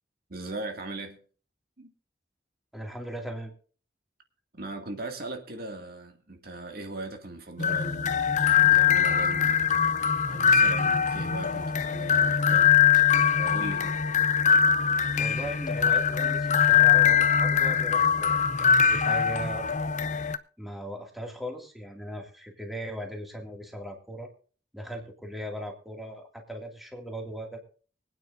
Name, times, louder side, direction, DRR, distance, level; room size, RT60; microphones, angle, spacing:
voice 1, 0.3-1.2 1.8-1.9 4.6-9.6 10.3-13.1 13.4-14.0, right 2 dB, 60° right, 2.2 m, -39 dB
voice 2, 2.7-3.5 15.2-19.7 20.2-24.3 24.7-27.6, equal, ahead, 2.2 m, -38 dB
sound 1, 7.6-20.4, left 8 dB, 45° left, 0.6 m, -22 dB
24.5 x 9.3 x 2.6 m
head